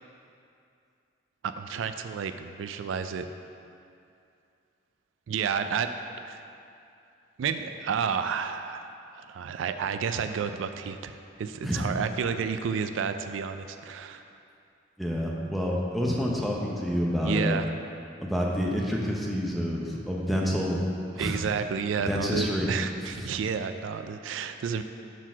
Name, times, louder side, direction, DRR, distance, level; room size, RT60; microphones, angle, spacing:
voice 1, 1.4-3.3 5.3-5.9 6.3-6.4 7.4-14.2 17.2-17.7 21.2-24.8, right 6 dB, 90° right, 9 dB, 0.3 m, -31 dB
voice 2, 15.0-17.6 18.2-20.8 21.1-21.4 22.0-22.7 23.0-23.3, equal, ahead, -3 dB, 0.7 m, -28 dB
6.0 x 4.5 x 5.8 m, 2.6 s
head